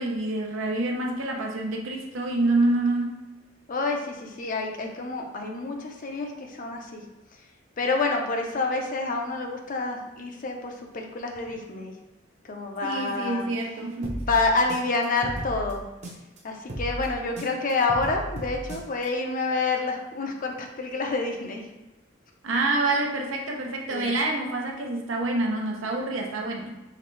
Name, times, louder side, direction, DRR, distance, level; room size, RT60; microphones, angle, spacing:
voice 1, 0.0-3.2 12.8-14.3 22.4-26.7, right 2 dB, 85° right, 1 dB, 0.7 m, -27 dB
voice 2, 3.7-7.0 7.8-11.9 12.4-13.5 14.3-15.8 16.4-21.7 23.9-24.1, left 3 dB, 45° left, 3 dB, 0.6 m, -28 dB
sound 1, 14.0-16.4 16.7-19.1, right 1 dB, 35° right, 0.7 m, -35 dB
3.9 x 3.4 x 3.1 m, 1.1 s
head